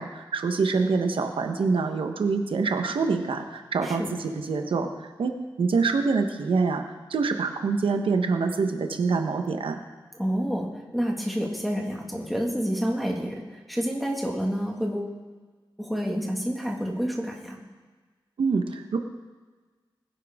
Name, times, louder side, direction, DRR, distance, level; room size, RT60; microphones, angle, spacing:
voice 1, 0.0-5.3 5.6-6.8 7.1-9.8 18.4-19.0, right 4 dB, 90° right, 5 dB, 1.1 m, -25 dB
voice 2, 10.1-15.2 15.8-17.6, equal, ahead, -1 dB, 1.8 m, -29 dB
20.0 x 10.5 x 3.6 m, 1.4 s
wide cardioid pair, 160°, 9 cm